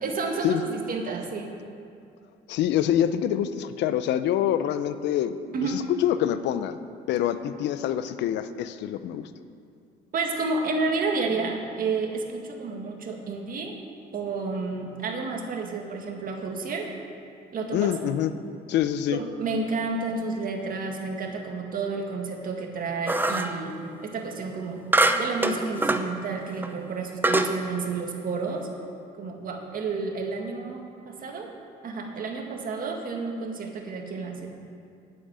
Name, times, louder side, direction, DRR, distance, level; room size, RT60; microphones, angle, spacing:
voice 1, 0.0-1.5 5.5-5.8 10.1-13.7 14.1-16.9 17.5-18.2 19.1-23.8 24.0-24.8 25.2-28.7 29.2-31.5 31.8-34.5, right 4 dB, 50° right, 2 dB, 1.9 m, -30 dB
voice 2, 2.5-5.4 5.6-6.8 7.1-9.2 17.7-18.3 18.7-19.2, left 11 dB, 80° left, 12 dB, 0.6 m, -25 dB
sound 1, 23.1-23.6 24.9-26.1 26.6-26.7 27.2-27.6, right 2 dB, 10° right, 0.7 m, -23 dB
8.7 x 7.9 x 8.9 m, 2.4 s
cardioid pair, 90°, 18 cm